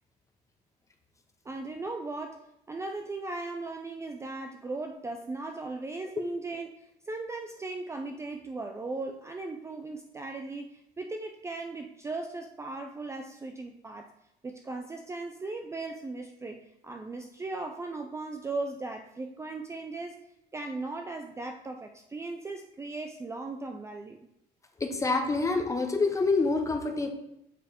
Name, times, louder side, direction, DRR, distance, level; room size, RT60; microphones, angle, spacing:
voice 1, 1.4-14.1 14.4-20.2 20.5-24.3, right 3 dB, 15° right, 4 dB, 0.4 m, -37 dB
voice 2, 24.8-27.1, left 3 dB, 20° left, 4 dB, 0.9 m, -26 dB
7.5 x 3.3 x 4.3 m, 0.81 s
cardioid pair, 110°, 17 cm